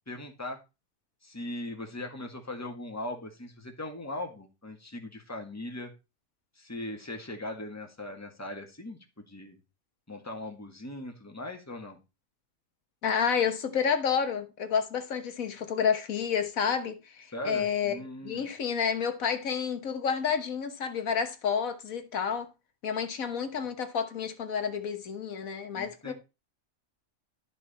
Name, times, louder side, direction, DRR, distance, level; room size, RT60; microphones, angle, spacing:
voice 1, 0.1-0.6 1.2-5.9 6.6-9.6 10.1-12.0 17.3-18.5 25.7-26.1, left 1 dB, 10° left, 1.7 m, -39 dB
voice 2, 13.0-22.5 22.8-26.1, left 7 dB, 80° left, 1.6 m, -30 dB
12.0 x 6.2 x 4.2 m
omnidirectional pair, 1.4 m